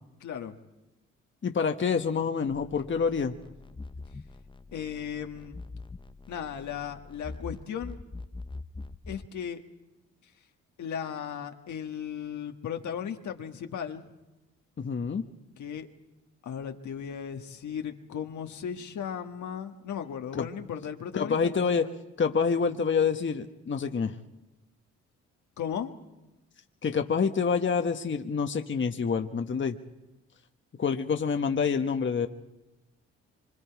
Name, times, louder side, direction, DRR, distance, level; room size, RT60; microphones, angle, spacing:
voice 1, 0.2-0.5 4.7-5.6 6.3-8.0 9.1-9.6 10.8-14.1 15.6-15.9 16.4-21.9 25.6-25.9, left 8 dB, 65° left, 5 dB, 1.6 m, -36 dB
voice 2, 1.4-3.3 14.8-15.3 20.3-20.5 21.1-21.9 22.2-24.1 26.8-29.8 30.8-32.3, left 5 dB, 35° left, 6 dB, 1.2 m, -27 dB
sound 1, 2.5-9.3, left 3 dB, 15° left, 0.7 m, -44 dB
25.0 x 25.0 x 4.7 m, 1.0 s
supercardioid pair, 55°, 31 cm